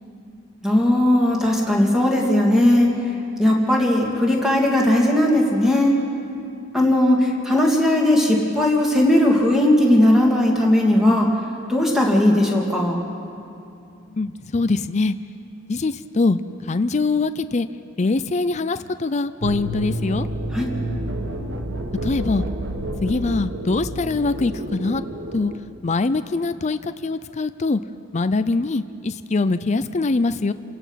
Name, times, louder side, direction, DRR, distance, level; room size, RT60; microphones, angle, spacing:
voice 1, 0.6-2.9 3.4-5.9 6.7-11.3 11.7-13.0 20.5-20.7, left 1 dB, ahead, -2 dB, 2.7 m, -17 dB
voice 2, 14.1-15.2 15.7-16.4 16.7-17.7 18.0-20.3 22.0-22.5 23.0-25.0 25.3-25.5 25.8-27.8 28.1-30.5, left 3 dB, 35° left, 11 dB, 0.5 m, -23 dB
sound 1, 19.4-25.6, right 1 dB, 65° right, 1.4 m, -29 dB
28.5 x 16.5 x 5.8 m, 2.6 s
head